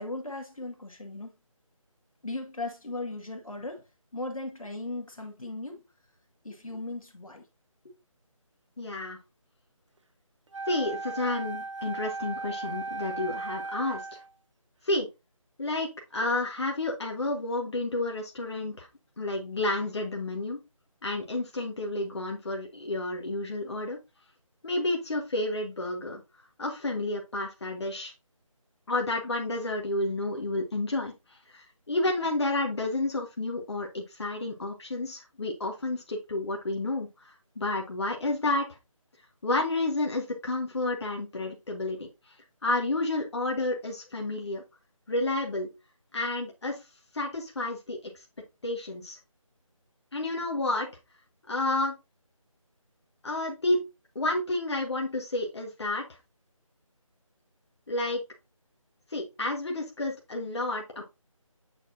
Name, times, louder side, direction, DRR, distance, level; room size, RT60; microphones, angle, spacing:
voice 1, 0.0-1.3 2.2-5.8 6.4-7.5 7.8-7.9, left 2 dB, 80° left, 2.1 m, -37 dB
voice 2, 8.8-9.2 10.7-14.2 14.8-15.1 15.6-18.9 19.2-20.6 21.0-24.0 24.6-26.2 26.6-28.1 28.9-38.7 39.4-42.1 42.6-44.6 45.1-45.7 46.1-46.8 47.1-48.2 48.6-49.2 50.1-50.9 51.5-51.9 53.2-53.8 54.1-56.1 57.9-58.2 59.1-61.0, left 2 dB, 50° left, 1.6 m, -30 dB
Wind instrument woodwind instrument, 10.5-14.3, right 3 dB, 60° right, 0.7 m, -36 dB
8.8 x 4.4 x 2.7 m
figure-of-eight pair, 165°, 18 cm